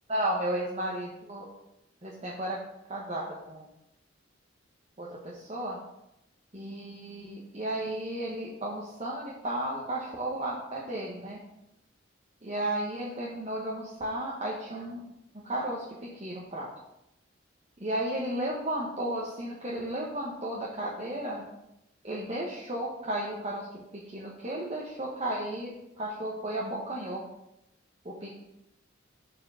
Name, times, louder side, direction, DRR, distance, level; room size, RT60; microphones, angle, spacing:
voice 1, 0.1-1.5 2.0-2.6 2.9-3.7 5.0-5.8 6.5-11.4 12.4-15.0 15.4-16.7 17.8-21.5 22.0-23.7 23.9-27.2 28.0-28.3, right 1 dB, 30° right, -5 dB, 1.2 m, -34 dB
7.5 x 4.8 x 6.4 m, 0.84 s
head